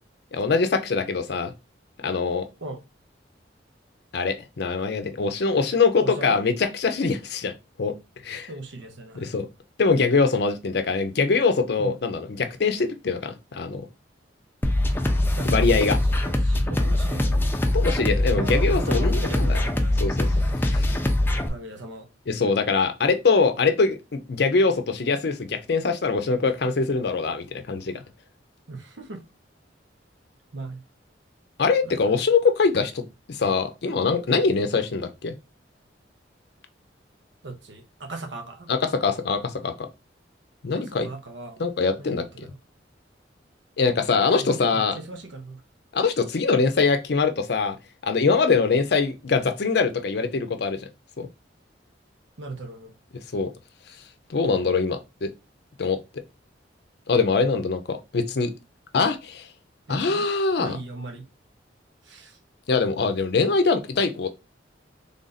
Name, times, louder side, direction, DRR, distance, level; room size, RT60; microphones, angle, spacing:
voice 1, 0.3-1.5 2.0-2.5 4.1-7.5 7.8-7.9 8.2-8.5 9.2-9.5 9.8-13.8 15.4-16.0 17.7-19.6 20.0-20.3 20.6-21.0 22.3-28.0 31.6-33.0 33.3-35.3 38.7-39.9 40.6-41.1 41.6-42.5 43.8-45.0 45.9-47.8 48.0-50.8 51.2-51.3 53.3-53.5 54.3-55.3 55.8-56.0 57.1-58.5 58.9-59.5 59.9-60.8 62.7-64.4, left 4 dB, 60° left, 0.5 m, -23 dB
voice 2, 6.0-6.4 8.5-9.3 11.8-12.0 15.3-15.9 16.3-17.5 18.3-20.1 20.3-20.4 21.5-22.1 28.7-29.2 30.5-30.8 31.8-32.1 37.4-38.7 40.8-41.6 42.0-42.5 44.3-45.6 52.4-52.9 59.9-60.2 60.6-61.2 62.1-62.4, right 2 dB, 80° right, 0.7 m, -37 dB
sound 1, 14.6-21.5, left 1 dB, 10° left, 0.5 m, -22 dB
3.4 x 2.5 x 3.9 m
head